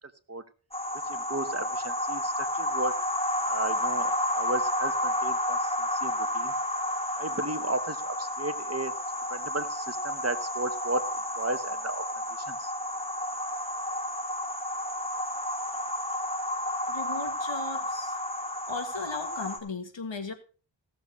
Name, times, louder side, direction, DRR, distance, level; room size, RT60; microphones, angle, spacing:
sound 1, 0.7-19.6, left 1 dB, 15° left, 2.1 m, -31 dB
voice 1, 1.1-3.0 3.5-6.5 7.1-8.9 9.3-11.1 11.3-12.0 12.4-12.7, right 2 dB, 35° right, 11 dB, 1.0 m, -34 dB
voice 2, 16.9-18.2 18.7-20.3, left 4 dB, 75° left, 8 dB, 1.6 m, -37 dB
15.5 x 7.0 x 4.8 m, 0.37 s
wide cardioid pair, 50°, 45 cm